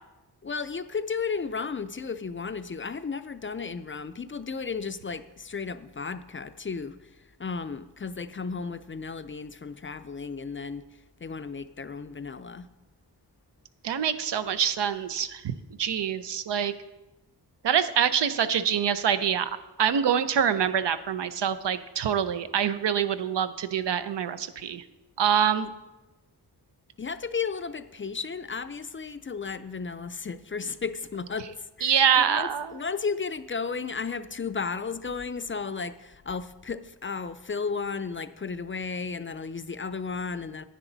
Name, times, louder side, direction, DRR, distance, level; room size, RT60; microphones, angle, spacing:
voice 1, 0.4-7.1 7.4-10.8 11.2-12.7 27.0-40.6, left 5 dB, 30° left, 0.4 m, -34 dB
voice 2, 13.8-16.7 17.6-19.5 19.8-24.8 25.2-25.7 31.8-32.7, right 8 dB, 85° right, 0.6 m, -25 dB
9.9 x 9.4 x 3.9 m
wide cardioid pair, 80°, 41 cm